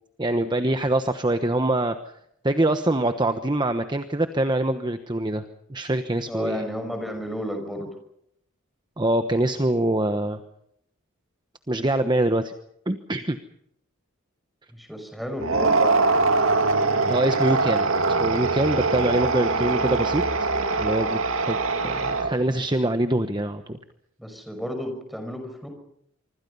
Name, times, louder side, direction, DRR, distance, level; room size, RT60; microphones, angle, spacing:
voice 1, 0.2-2.0 2.4-5.4 5.7-6.6 9.0-10.4 11.7-12.5 12.9-13.4 17.1-17.9 18.2-20.5 20.8-21.2 21.5-21.6 21.8-23.8, right 1 dB, 20° right, 8 dB, 1.1 m, -24 dB
voice 2, 6.3-7.9 14.7-16.3 19.5-19.9 24.2-25.7, equal, ahead, 6 dB, 5.9 m, -33 dB
sound 1, 15.4-22.6, right 3 dB, 80° right, 2.3 m, -23 dB
25.5 x 25.5 x 5.6 m, 0.73 s
head